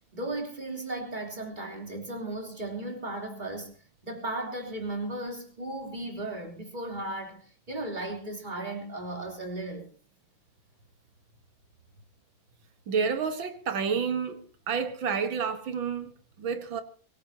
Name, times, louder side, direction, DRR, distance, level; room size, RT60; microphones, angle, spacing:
voice 1, 0.1-3.8 4.0-9.9, right 2 dB, 20° right, 3.7 m, -36 dB
voice 2, 12.9-16.8, right 6 dB, 85° right, 2.4 m, -30 dB
24.5 x 17.0 x 2.9 m
omnidirectional pair, 2.1 m